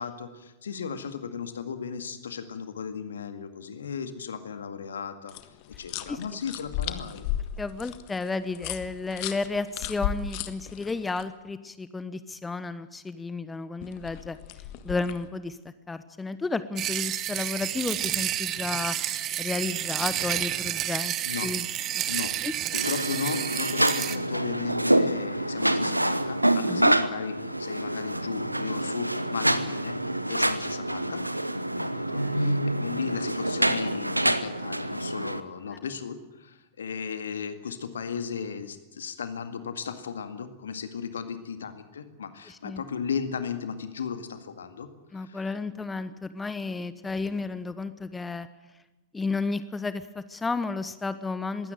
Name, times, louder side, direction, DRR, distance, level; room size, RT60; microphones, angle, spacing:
voice 1, 0.0-5.3 5.8-7.2 21.3-21.5 22.1-22.3 22.8-29.9 30.3-31.2 31.8-44.9 45.3-45.4, left 6 dB, 70° left, 9 dB, 2.0 m, -35 dB
sound 1, 5.3-11.2 13.8-15.3, left 11 dB, 45° left, 1.4 m, -35 dB
voice 2, 7.6-14.4 14.8-15.6 15.9-19.0 19.4-21.1 21.4-21.7 22.2-22.5 26.7-26.9 32.1-32.5 35.7-35.8 42.5-42.8 45.1-48.5 49.1-51.7, left 3 dB, 10° left, 14 dB, 1.0 m, -32 dB
sound 2, 16.8-24.2, right 12 dB, 30° right, 1.2 m, -30 dB
sound 3, 22.8-35.4, right 1 dB, 85° right, 0.9 m, -27 dB
21.5 x 16.5 x 9.2 m, 1.0 s
figure-of-eight pair, 90°, 0 cm